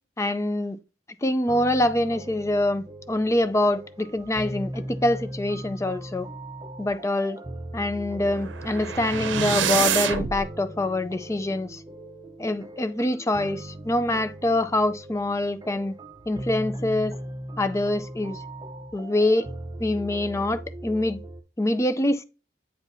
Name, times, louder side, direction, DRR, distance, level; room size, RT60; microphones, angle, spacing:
voice 1, 0.2-0.8 1.2-6.3 6.8-7.4 7.7-11.8 12.4-15.9 16.3-17.1 17.6-18.4 18.9-19.5 19.8-21.2 21.6-22.2, left 1 dB, 15° left, 0.4 m, -25 dB
sound 1, 1.5-21.4, right 1 dB, 20° right, 0.7 m, -39 dB
sound 2, 8.2-10.4, right 7 dB, 70° right, 0.7 m, -26 dB
8.9 x 4.5 x 2.7 m
head